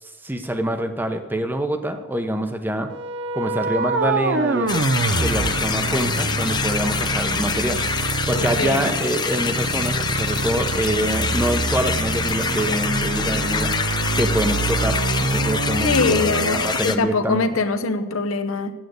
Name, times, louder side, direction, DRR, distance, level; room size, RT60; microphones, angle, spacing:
voice 1, 0.0-2.9 3.3-4.8 5.2-8.0 8.3-17.4, right 1 dB, 10° right, 7 dB, 0.8 m, -25 dB
sound 1, 2.9-16.8, right 3 dB, 55° right, 0.6 m, -25 dB
sound 2, 4.7-17.0, left 6 dB, 20° left, 0.3 m, -26 dB
voice 2, 8.3-8.8 15.8-18.7, left 3 dB, 75° left, 10 dB, 0.8 m, -23 dB
8.9 x 7.9 x 8.0 m, 1.1 s
head